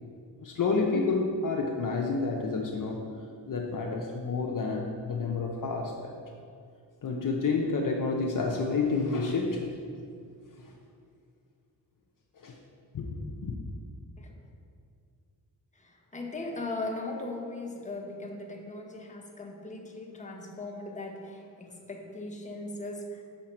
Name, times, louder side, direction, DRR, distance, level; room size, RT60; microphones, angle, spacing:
voice 1, 0.4-3.0 3.5-6.1 7.0-9.6 12.4-12.6 12.9-13.5, left 4 dB, 45° left, 0 dB, 0.8 m, -29 dB
voice 2, 15.7-23.2, left 2 dB, 15° left, 1 dB, 1.1 m, -38 dB
5.7 x 5.7 x 4.4 m, 2.3 s
cardioid pair, 55°, 44 cm